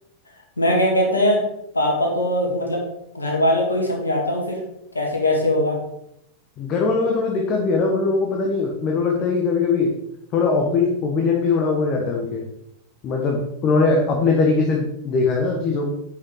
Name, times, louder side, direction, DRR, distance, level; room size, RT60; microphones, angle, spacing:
voice 1, 0.6-1.4 1.7-2.8 3.1-4.6 4.9-5.8, left 1 dB, 75° left, 0 dB, 2.2 m, -20 dB
voice 2, 6.6-9.9 10.3-12.4 13.0-15.9, left 4 dB, 35° left, 0 dB, 1.4 m, -21 dB
10.0 x 5.5 x 3.9 m, 0.80 s
figure-of-eight pair, 90°, 0 cm